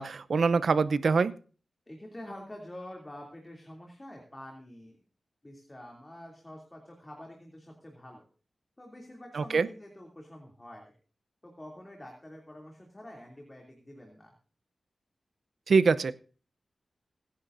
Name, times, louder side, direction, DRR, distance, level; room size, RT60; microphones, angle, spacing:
voice 1, 0.0-1.3 9.3-9.7 15.7-16.1, right 4 dB, 70° right, 14 dB, 0.7 m, -24 dB
voice 2, 1.9-5.0 5.4-8.3 8.8-10.9 11.4-14.3, left 1 dB, 20° left, 0 dB, 2.9 m, -47 dB
26.0 x 10.0 x 2.7 m, 0.39 s
wide cardioid pair, 100°, 0 cm